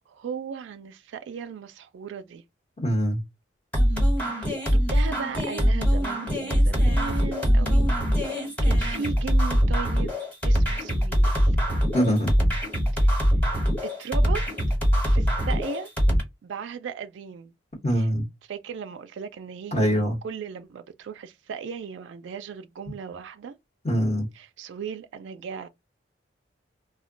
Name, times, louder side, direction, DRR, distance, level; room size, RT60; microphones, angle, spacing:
voice 1, 0.1-2.4 4.3-10.1 10.4-11.6 13.0-13.2 13.8-14.4 15.1-15.9 16.4-17.5 18.0-18.1 18.5-23.5 24.4-25.7, right 6 dB, 75° right, 0.3 m, -37 dB
voice 2, 2.8-3.2 11.9-12.3 17.8-18.2 19.7-20.2 23.8-24.3, equal, 35° left, 0.9 m, -23 dB
sound 1, 3.7-16.2, equal, 10° left, 1.0 m, -22 dB
2.2 x 2.1 x 3.7 m
head